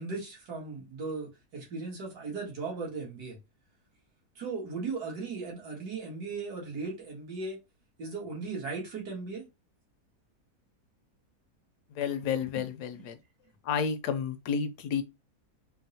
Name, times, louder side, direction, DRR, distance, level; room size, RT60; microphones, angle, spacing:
voice 1, 0.0-3.4 4.4-7.6 8.0-9.4 13.0-13.1, right 4 dB, 80° right, 1.9 m, -37 dB
voice 2, 12.0-13.2 13.7-15.0, left 6 dB, 90° left, 1.2 m, -31 dB
4.3 x 2.0 x 2.7 m
omnidirectional pair, 1.7 m